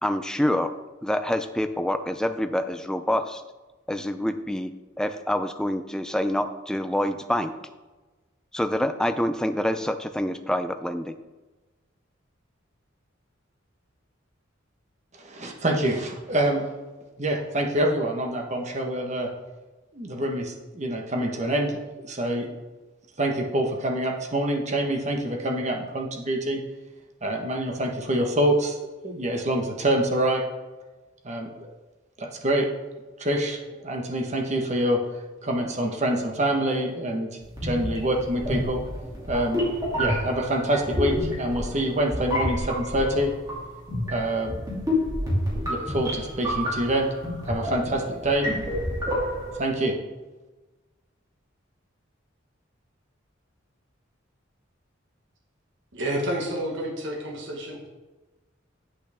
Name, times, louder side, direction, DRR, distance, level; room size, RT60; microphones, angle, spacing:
voice 1, 0.0-0.7 1.0-3.4 3.9-4.7 5.0-7.5 8.5-11.2, left 1 dB, 5° left, 9 dB, 0.4 m, -26 dB
voice 2, 15.2-16.7 17.2-19.3 19.9-22.4 23.2-26.6 27.2-28.8 29.0-30.4 31.2-31.7 32.2-32.7 33.2-35.0 35.4-38.8 39.3-39.6 39.9-43.3 44.1-44.6 45.5-47.1 47.5-48.5 49.6-49.9, right 1 dB, 35° right, 2 dB, 1.2 m, -26 dB
sound 1, 37.5-49.6, equal, 20° right, 2.5 m, -29 dB
voice 3, 55.9-57.8, right 1 dB, 65° right, -1 dB, 1.5 m, -29 dB
8.5 x 7.9 x 3.5 m, 1.2 s
head